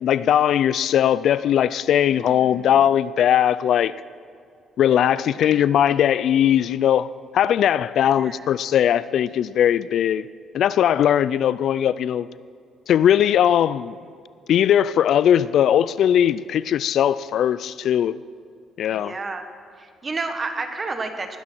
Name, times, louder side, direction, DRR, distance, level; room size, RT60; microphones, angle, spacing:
voice 1, 0.0-3.9 4.8-10.3 10.5-12.3 12.9-14.0 14.5-18.2 18.8-19.1, left 10 dB, 70° left, 0.3 m, -19 dB
voice 2, 2.1-2.9 5.3-5.7 8.1-8.5 18.9-19.5 19.8-21.4, right 3 dB, 30° right, 1.4 m, -32 dB
19.0 x 10.5 x 4.5 m
cardioid pair, 100°, 0 cm